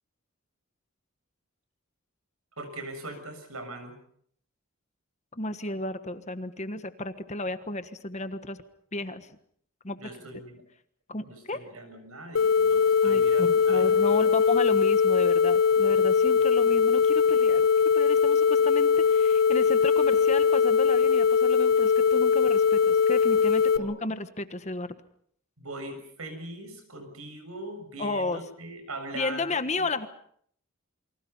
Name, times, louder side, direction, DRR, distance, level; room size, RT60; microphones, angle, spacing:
voice 1, 2.6-4.0 10.0-10.6 11.3-14.2 16.4-16.5 23.8-23.9 25.6-29.9, right 2 dB, 80° right, 8 dB, 7.0 m, -41 dB
voice 2, 5.3-8.6 8.9-9.3 9.8-10.0 11.1-11.6 13.0-17.6 17.9-24.9 28.0-28.4 29.1-30.1, left 2 dB, 30° left, 10 dB, 1.4 m, -33 dB
sound 1, 12.4-23.8, left 6 dB, 65° left, 1.1 m, -21 dB
28.5 x 24.5 x 5.6 m, 0.64 s
head